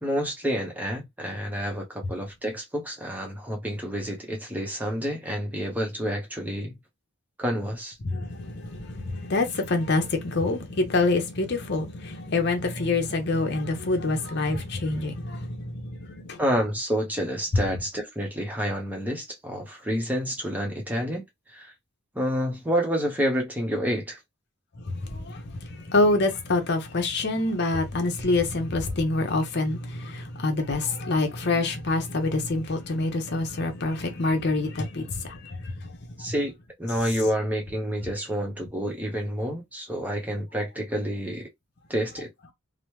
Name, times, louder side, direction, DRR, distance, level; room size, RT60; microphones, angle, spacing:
voice 1, 0.0-6.8 7.4-7.9 16.4-21.2 21.5-21.7 22.1-24.2 36.2-36.5 36.8-41.5 41.9-42.3, equal, 10° right, 0.8 m, -29 dB
voice 2, 8.0-16.4 17.5-17.6 24.8-35.9, left 2 dB, 50° left, 0.7 m, -26 dB
3.0 x 2.1 x 3.0 m
head